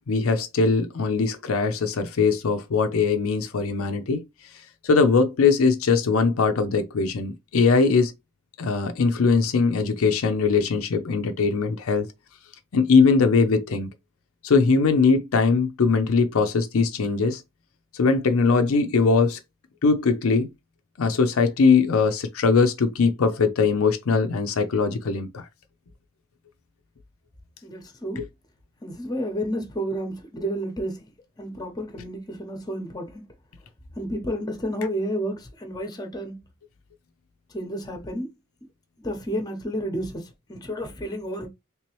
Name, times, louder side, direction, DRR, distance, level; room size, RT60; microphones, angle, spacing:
voice 1, 0.1-4.2 4.8-8.1 8.6-12.1 12.7-13.9 14.4-17.4 17.9-19.4 19.8-20.5 21.0-25.5 28.2-28.3, left 4 dB, 65° left, 0.5 m, -21 dB
voice 2, 27.6-28.2 28.8-30.9 31.4-33.2 34.0-36.3 37.5-38.3 39.0-40.2 40.5-41.5, equal, 20° left, 0.9 m, -31 dB
3.3 x 3.0 x 3.0 m
head